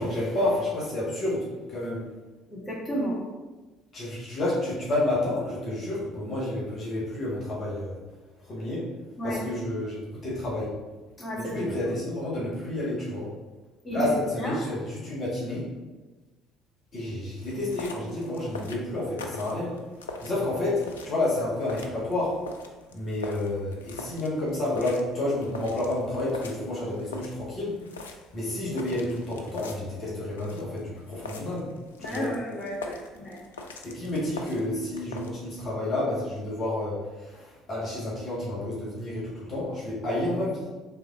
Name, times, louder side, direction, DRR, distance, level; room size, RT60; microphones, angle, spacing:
voice 1, 0.0-2.0 3.9-8.0 8.5-8.9 9.2-10.7 11.4-13.3 13.9-15.7 16.9-19.8 20.2-22.4 22.9-27.7 28.3-31.7 32.0-32.3 33.8-40.7, left 1 dB, 40° left, -7 dB, 1.3 m, -30 dB
voice 2, 2.5-3.2 9.2-9.4 11.2-11.5 13.8-14.1 14.4-14.6 32.0-33.4, equal, 20° left, -6 dB, 1.4 m, -32 dB
sound 1, 17.4-35.3, left 3 dB, 75° left, 0.3 m, -43 dB
3.5 x 3.4 x 3.6 m, 1.2 s
figure-of-eight pair, 55°, 0 cm